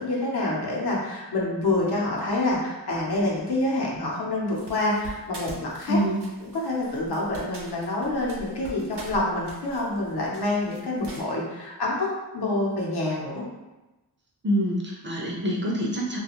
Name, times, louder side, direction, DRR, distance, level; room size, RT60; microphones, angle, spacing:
voice 1, 0.0-6.0 6.5-13.4, left 2 dB, 75° left, -3 dB, 0.8 m, -27 dB
sound 1, 4.5-11.2, right 1 dB, 85° right, 0.7 m, -44 dB
voice 2, 5.9-6.2 14.4-16.2, equal, 30° right, -3 dB, 0.5 m, -26 dB
2.4 x 2.3 x 2.9 m, 1.1 s
wide cardioid pair, 115°, 39 cm